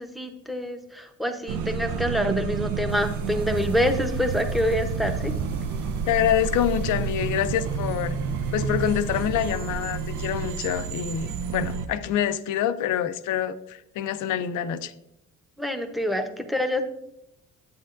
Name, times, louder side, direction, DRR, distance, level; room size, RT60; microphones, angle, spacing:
voice 1, 0.0-5.3 15.6-16.8, left 1 dB, ahead, 0.8 m, -26 dB
sound 1, 1.5-11.9, right 5 dB, 80° right, 0.6 m, -30 dB
sound 2, 2.9-11.8, right 2 dB, 55° right, 1.8 m, -49 dB
voice 2, 6.1-8.2 8.5-14.9, left 10 dB, 85° left, 0.5 m, -26 dB
9.6 x 8.0 x 2.5 m
cardioid pair, 90°, 30 cm